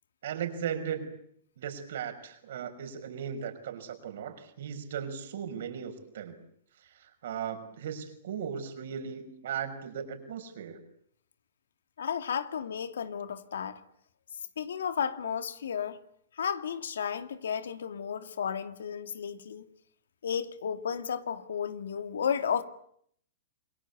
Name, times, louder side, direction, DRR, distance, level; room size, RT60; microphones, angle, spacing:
voice 1, 0.2-1.2 1.6-6.4 6.8-10.8, right 8 dB, 70° right, 6.1 m, -37 dB
voice 2, 12.0-13.8 14.6-16.0 16.4-19.6 20.2-22.6, left 7 dB, 85° left, 2.3 m, -33 dB
28.0 x 22.5 x 8.6 m
hypercardioid pair, 125°, 0 cm